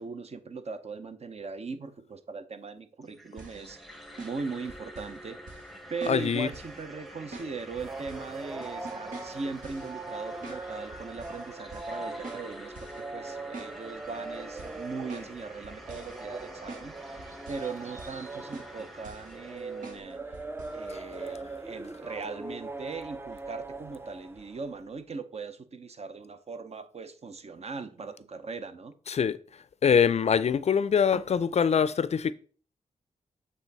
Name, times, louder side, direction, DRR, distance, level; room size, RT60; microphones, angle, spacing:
voice 1, 0.0-3.8 4.2-5.6 5.9-20.4 20.7-28.9, right 4 dB, 50° right, 0.8 m, -39 dB
sound 1, 3.0-20.0, equal, ahead, 0.9 m, -47 dB
sound 2, 3.4-5.2 5.5-5.7 6.0-6.8 7.3-8.3 8.6-9.9 10.4-10.6 10.9-11.4 11.7-12.0 12.2-13.0 13.3-14.1 14.6-15.4 15.6-16.2 16.7-16.9 17.2-17.7 18.0-18.3 18.5-19.3 19.8-20.1 20.3-20.8 21.1-21.2, right 3 dB, 75° right, 1.7 m, -45 dB
voice 2, 6.1-6.5 20.9-21.0 29.1-29.4 29.8-32.3, left 7 dB, 50° left, 0.4 m, -24 dB
sound 3, 7.7-24.7, right 3 dB, 15° right, 0.5 m, -41 dB
8.1 x 3.7 x 4.0 m
cardioid pair, 80°, 14 cm